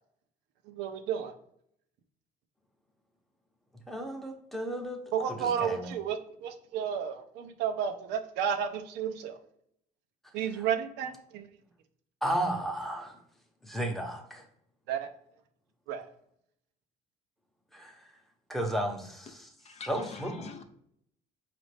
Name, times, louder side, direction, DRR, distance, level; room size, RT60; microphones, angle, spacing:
voice 1, 0.7-1.3 5.1-9.4 10.3-11.5 14.9-15.1 15.9-16.1, right 8 dB, 90° right, 7 dB, 0.5 m, -32 dB
voice 2, 3.9-5.0 5.3-5.9 10.6-10.7 12.2-13.2 13.6-14.4 17.7-18.0 18.5-19.5 19.9-20.5, right 1 dB, ahead, 2 dB, 0.8 m, -33 dB
voice 3, 19.6-20.6, left 5 dB, 40° left, 7 dB, 0.6 m, -45 dB
5.0 x 2.5 x 3.3 m, 0.71 s
cardioid pair, 110°, 17 cm